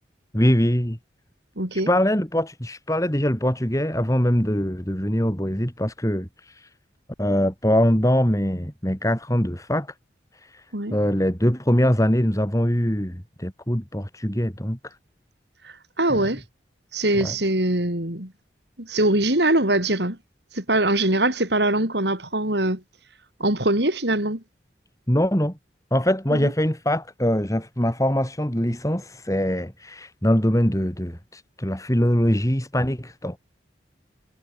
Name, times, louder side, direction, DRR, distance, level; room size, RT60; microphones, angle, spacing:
voice 1, 0.3-1.0 1.9-6.7 7.2-9.9 10.4-10.6 10.9-15.0 16.1-16.2 17.2-17.3 25.1-25.5 25.9-33.4, equal, 15° left, 4.1 m, -23 dB
voice 2, 1.6-1.9 10.7-11.0 15.6-16.4 16.9-18.3 18.8-20.2 20.5-22.8 23.4-24.4 26.3-26.5, right 1 dB, 65° right, 5.2 m, -22 dB
head